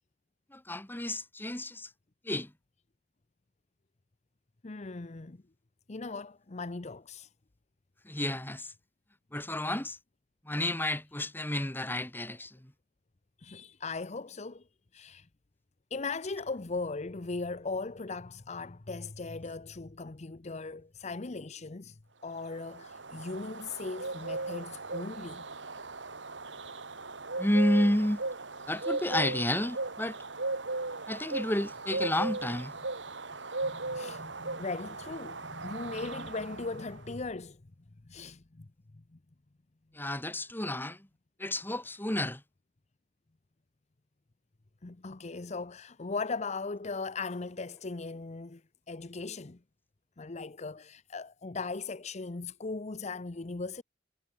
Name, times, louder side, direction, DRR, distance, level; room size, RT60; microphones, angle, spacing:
voice 1, 0.5-1.9 2.3-2.5 8.1-8.7 9.3-10.0 10.5-12.7 27.4-28.2 28.7-30.2 31.1-32.7 40.0-41.1 41.4-42.4, left 1 dB, 10° left, 2.0 m, -31 dB
voice 2, 4.6-5.4 5.9-7.3 13.4-14.7 14.9-15.3 15.9-25.5 33.6-37.6 38.0-38.7 38.9-39.2 44.8-48.6 48.9-49.6 50.2-53.8, left 3 dB, 40° left, 0.8 m, -38 dB
sound 1, 22.4-37.0, right 3 dB, 90° right, 3.6 m, -37 dB
head